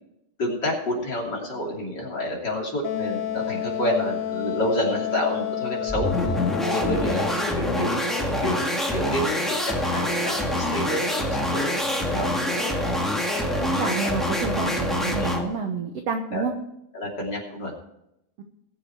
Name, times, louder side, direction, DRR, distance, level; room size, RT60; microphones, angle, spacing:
voice 1, 0.4-6.1 6.7-8.0 8.4-8.6 8.9-12.8 13.3-14.2 15.2-15.4 16.3-16.4 16.9-17.7, left 1 dB, 30° left, -2 dB, 3.1 m, -29 dB
Wind instrument woodwind instrument, 2.8-7.5, left 10 dB, 75° left, 2.4 m, -30 dB
sound 1, 5.9-15.5, left 1 dB, ahead, 0.6 m, -25 dB
voice 2, 13.5-16.5 18.4-18.5, right 5 dB, 65° right, 4 dB, 1.6 m, -29 dB
20.5 x 7.2 x 4.7 m, 0.82 s
omnidirectional pair, 4.1 m